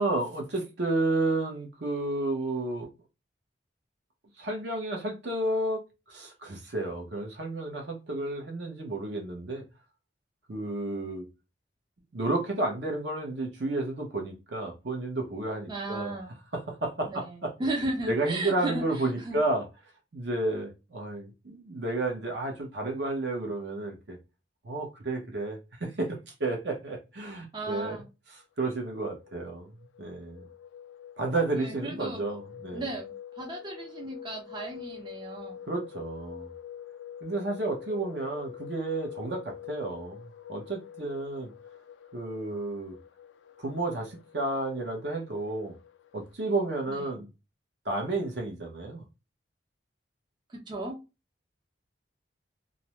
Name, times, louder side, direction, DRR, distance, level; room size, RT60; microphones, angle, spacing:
voice 1, 0.0-2.9 4.4-5.8 6.1-9.6 10.5-11.3 12.1-16.2 16.5-17.5 18.1-19.6 20.1-24.2 24.6-28.0 28.6-30.4 31.2-32.8 35.7-36.5 37.2-41.5 42.1-43.0 43.6-45.7 46.1-47.3 47.8-49.0, right 2 dB, 65° right, 0.8 m, -31 dB
voice 2, 15.7-16.3 17.1-19.4 27.5-28.1 31.5-32.2 32.7-35.6 46.9-47.0 50.5-51.0, right 2 dB, 25° right, 0.4 m, -35 dB
sound 1, 28.6-46.3, left 9 dB, 75° left, 0.3 m, -46 dB
2.5 x 2.1 x 2.9 m
head